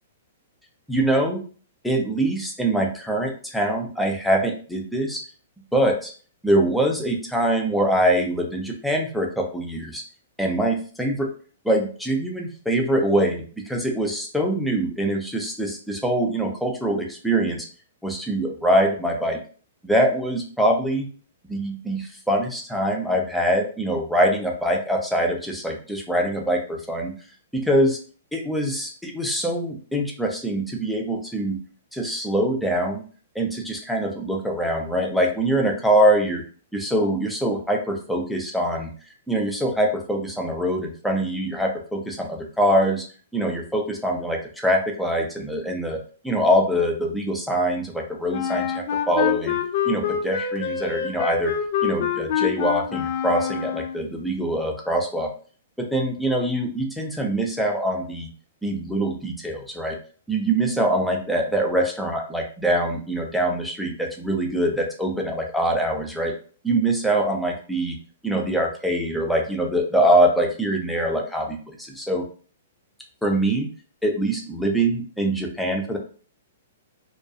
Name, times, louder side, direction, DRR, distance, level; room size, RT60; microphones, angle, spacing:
voice 1, 0.9-1.4 1.8-5.2 5.7-6.1 6.4-10.0 10.4-11.3 11.6-17.7 18.0-19.4 19.8-21.1 21.5-27.1 27.5-28.0 28.3-31.6 31.9-33.0 33.4-36.4 36.7-38.9 39.3-43.0 43.3-46.0 46.2-49.6 49.9-51.5 51.8-55.3 55.8-58.3 58.6-59.9 60.3-66.3 66.6-67.9 68.2-72.2 73.2-73.7 74.0-76.0, right 1 dB, ahead, 0 dB, 0.5 m, -23 dB
Wind instrument woodwind instrument, 48.3-54.0, left 8 dB, 55° left, 0.4 m, -26 dB
2.3 x 2.3 x 2.6 m, 0.41 s
hypercardioid pair, 135°, 0 cm